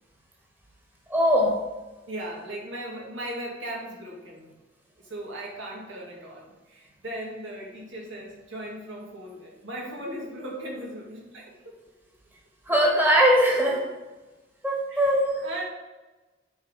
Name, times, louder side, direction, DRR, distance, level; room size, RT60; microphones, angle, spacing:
voice 1, 1.1-1.5 12.7-13.8 14.6-15.5, equal, 10° right, -2 dB, 1.4 m, -21 dB
voice 2, 2.1-4.5 5.0-11.5 14.9-15.0 15.4-15.7, right 1 dB, 90° right, -3 dB, 2.4 m, -37 dB
10.0 x 4.6 x 4.0 m, 1.2 s
head